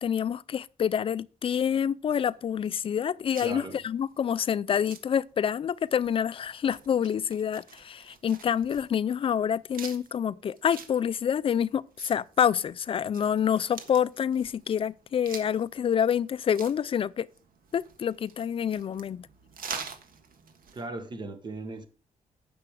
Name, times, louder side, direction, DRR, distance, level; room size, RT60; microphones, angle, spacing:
voice 1, 0.0-17.3 17.7-19.3, left 8 dB, 40° left, 0.4 m, -27 dB
sound 1, 2.2-20.9, right 6 dB, 85° right, 1.5 m, -47 dB
voice 2, 3.4-3.8 20.7-21.9, right 2 dB, 30° right, 1.2 m, -37 dB
9.9 x 6.8 x 4.8 m
wide cardioid pair, 180°, 14 cm